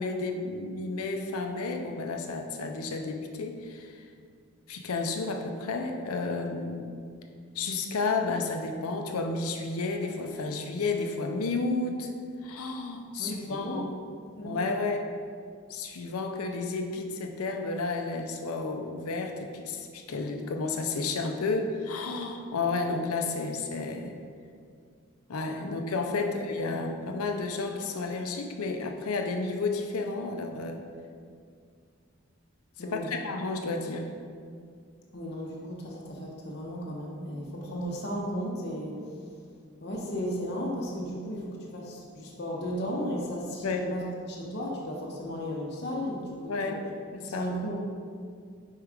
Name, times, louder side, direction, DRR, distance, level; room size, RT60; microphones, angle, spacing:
voice 1, 0.0-4.0 4.7-6.9 7.5-12.1 12.4-14.0 14.4-15.0 15.7-24.1 25.3-30.8 32.8-34.1 43.6-43.9 46.5-46.8 47.1-47.5, left 3 dB, 85° left, 4 dB, 0.6 m, -31 dB
voice 2, 13.2-13.9 14.3-14.7 25.6-25.7 26.2-26.3 26.6-26.8 32.8-33.2 35.1-39.3 39.8-46.8 47.2-47.9, equal, 50° left, -2 dB, 0.8 m, -35 dB
4.7 x 4.6 x 4.9 m, 2.2 s
head